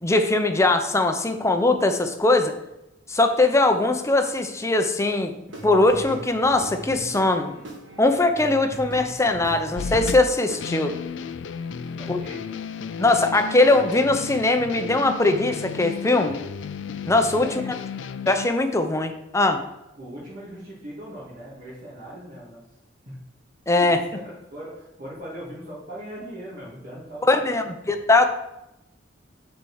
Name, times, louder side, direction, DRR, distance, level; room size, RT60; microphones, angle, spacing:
voice 1, 0.0-2.5 3.1-5.3 5.6-7.5 8.0-10.9 12.1-12.2 13.0-16.4 17.1-17.5 18.3-19.6 23.7-24.0 27.3-28.3, left 2 dB, 15° left, 6 dB, 0.6 m, -20 dB
Guitar / Drum, 5.5-11.1, right 1 dB, 70° right, 1.6 m, -40 dB
sound 1, 9.7-18.5, left 6 dB, 65° left, 0.4 m, -34 dB
voice 2, 12.0-12.4 17.4-17.7 20.0-22.6 23.1-23.2 24.1-27.8, equal, 50° right, -9 dB, 2.5 m, -39 dB
6.7 x 4.5 x 6.3 m, 0.88 s
head